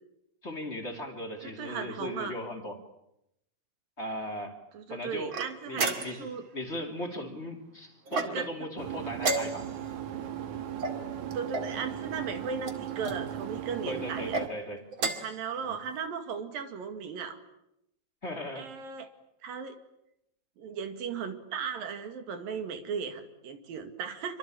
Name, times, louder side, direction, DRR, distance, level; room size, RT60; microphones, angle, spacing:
voice 1, 0.4-2.8 4.0-4.6 4.9-5.4 5.7-6.3 6.5-9.7 13.8-14.8 15.7-15.8 18.2-18.7, left 1 dB, 20° left, 3 dB, 2.9 m, -37 dB
voice 2, 1.4-2.3 4.7-6.4 8.3-8.4 11.3-14.4 15.2-17.4 18.6-19.1 19.4-19.8 20.6-24.4, right 6 dB, 75° right, 7 dB, 4.0 m, -36 dB
sound 1, 5.3-6.4 8.1-8.6 9.2-9.9 10.8-11.7 12.6-13.2 14.1-14.5 14.9-15.4, right 3 dB, 40° right, 2.5 m, -33 dB
sound 2, 8.8-14.5, right 10 dB, 60° right, 2.8 m, -37 dB
27.0 x 25.0 x 8.8 m, 0.83 s
omnidirectional pair, 4.1 m